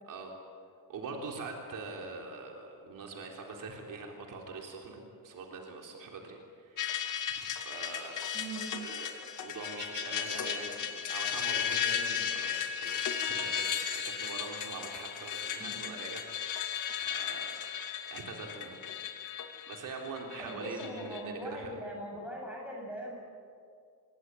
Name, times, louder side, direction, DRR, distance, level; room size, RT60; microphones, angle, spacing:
voice 1, 0.9-7.1 7.6-8.5 8.8-13.8 14.1-17.6 18.1-18.9 19.2-21.8, right 3 dB, 55° right, 1 dB, 3.8 m, -43 dB
sound 1, 6.8-21.2, left 8 dB, 55° left, 2.7 m, -35 dB
voice 2, 8.3-8.7 15.6-15.7 20.4-23.1, right 1 dB, 5° right, -2 dB, 7.6 m, -40 dB
26.0 x 23.0 x 9.8 m, 2.2 s
cardioid pair, 175°, 37 cm